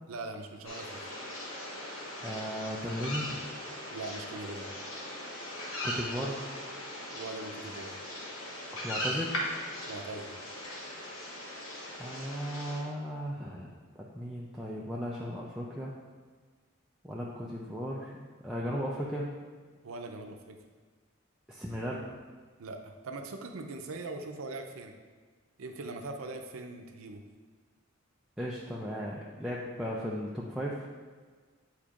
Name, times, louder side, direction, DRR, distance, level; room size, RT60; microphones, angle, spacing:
voice 1, 0.1-1.0 3.9-4.7 7.1-7.9 9.8-10.3 19.8-20.6 22.6-24.9 25.6-27.2, right 2 dB, 80° right, 4 dB, 0.6 m, -41 dB
sound 1, 0.7-12.8, left 1 dB, 70° left, 1.1 m, -39 dB
voice 2, 2.2-3.4 5.8-6.4 8.7-9.4 12.0-15.9 17.0-19.3 21.5-22.1 28.4-30.9, equal, 5° right, -5 dB, 0.4 m, -36 dB
8.5 x 4.4 x 2.5 m, 1.5 s
head